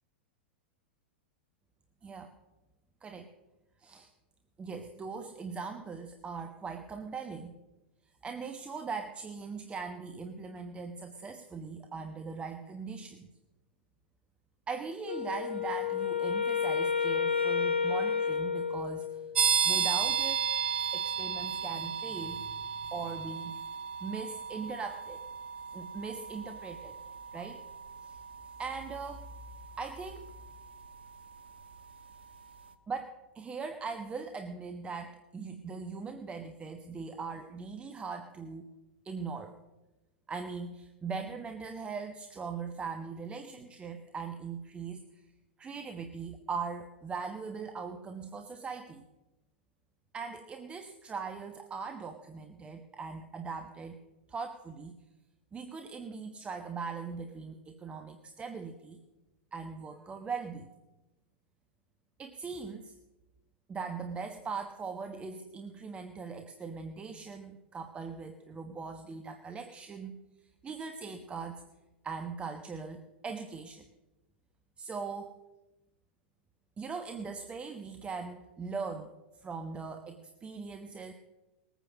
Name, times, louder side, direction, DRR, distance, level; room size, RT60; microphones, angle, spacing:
voice 1, 2.0-2.3 3.0-3.3 3.8-4.1 4.6-7.5 8.2-13.3 14.7-19.2 19.6-20.5 20.9-22.5 22.9-23.6 24.0-25.2 25.7-27.0 27.3-27.6 28.0-28.2 28.6-29.3 29.8-30.3 32.9-38.7 39.0-39.6 40.3-45.3 45.6-49.0 50.1-54.0 54.3-55.0 55.5-59.0 59.5-60.7 62.2-62.9 63.7-70.2 70.6-71.6 72.0-73.9 74.8-75.3 76.8-81.1, right 5 dB, 20° right, 6 dB, 1.1 m, -40 dB
Wind instrument woodwind instrument, 15.0-19.4, left 6 dB, 85° left, 1.1 m, -30 dB
sound 1, 19.3-31.9, right 7 dB, 70° right, 1.3 m, -34 dB
21.0 x 9.2 x 6.3 m, 1.0 s
figure-of-eight pair, 100°, 6 cm